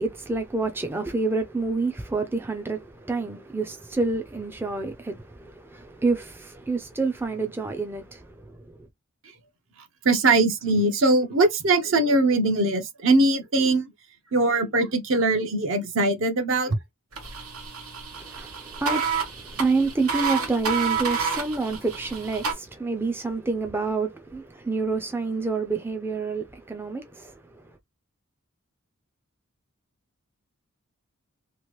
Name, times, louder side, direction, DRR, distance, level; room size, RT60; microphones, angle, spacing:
voice 1, 0.0-8.8 18.1-27.7, right 3 dB, 10° right, 0.3 m, -28 dB
voice 2, 10.0-13.9 14.3-16.8, right 2 dB, 65° right, 0.8 m, -21 dB
sound 1, 17.1-22.5, right 6 dB, 90° right, 1.3 m, -29 dB
2.9 x 2.4 x 3.0 m
head